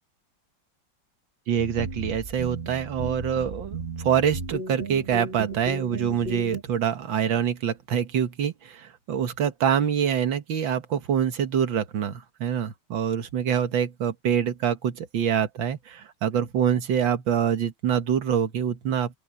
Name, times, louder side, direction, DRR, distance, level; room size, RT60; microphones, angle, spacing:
voice 1, 1.5-19.2, right 8 dB, 80° right, 2.1 m, -25 dB
sound 1, 1.6-6.6, right 2 dB, 30° right, 1.9 m, -35 dB
open air
omnidirectional pair, 2.1 m